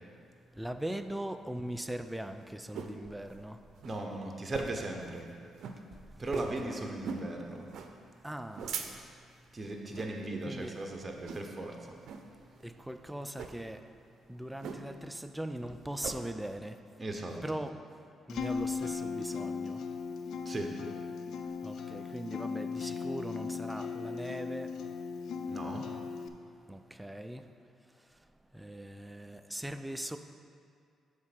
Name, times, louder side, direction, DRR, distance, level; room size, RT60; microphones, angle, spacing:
voice 1, 0.5-3.6 5.9-6.9 8.2-9.1 10.4-10.8 12.6-13.9 14.3-16.8 17.4-17.7 18.3-19.9 21.6-24.8 25.6-25.9 26.7-27.5 28.0-28.2 28.5-30.2, right 1 dB, 5° right, 8 dB, 0.4 m, -40 dB
sound 1, 1.8-3.0 3.4-3.5 3.7-4.0 4.4-4.9 5.2-5.3 5.6-5.8 6.3-6.6 7.0-7.3 7.7-7.9 8.3-9.2 9.8-10.1 10.6-10.8 11.2-11.6 12.0-12.3 13.3-13.6 14.6-15.1 15.4-16.2, right 6 dB, 70° right, 0.5 m, -41 dB
voice 2, 3.8-5.3 6.2-7.6 9.5-12.0 17.0-17.4 20.4-20.7 25.5-25.9, right 2 dB, 25° right, 2 dB, 0.9 m, -37 dB
Acoustic guitar, 18.3-26.3, left 5 dB, 70° left, 0.4 m, -38 dB
7.4 x 3.7 x 6.0 m, 2.3 s
cardioid pair, 90°, 0 cm